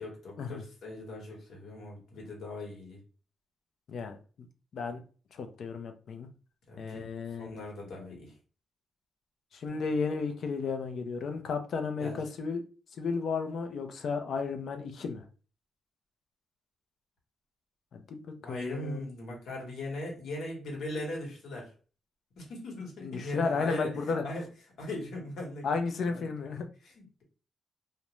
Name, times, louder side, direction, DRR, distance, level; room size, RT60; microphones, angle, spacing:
voice 1, 0.0-3.0 6.7-7.1 7.4-8.3 9.7-9.8 12.0-12.2 18.4-21.7 22.4-24.5 24.8-26.3 26.8-27.2, left 1 dB, 80° left, -1 dB, 1.1 m, -39 dB
voice 2, 5.3-6.3 6.8-7.5 9.5-12.6 13.0-15.2 17.9-18.2 18.5-19.0 23.0-24.2 25.6-26.7, left 4 dB, 65° left, 6 dB, 0.5 m, -33 dB
2.5 x 2.1 x 2.9 m, 0.37 s
cardioid pair, 120°, 0 cm